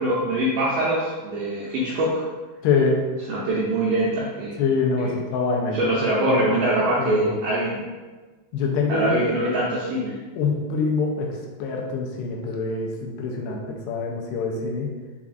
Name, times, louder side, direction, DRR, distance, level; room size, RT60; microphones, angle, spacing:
voice 1, 0.0-2.2 3.3-4.5 5.0-5.2 5.7-7.8 8.9-10.2, right 1 dB, 90° right, -7 dB, 1.9 m, -23 dB
voice 2, 2.6-3.0 4.6-5.8 6.3-6.4 7.0-7.3 8.5-9.2 10.4-11.3 11.6-14.9, left 4 dB, 85° left, 0 dB, 2.5 m, -24 dB
6.9 x 2.4 x 2.4 m, 1.3 s
omnidirectional pair, 4.5 m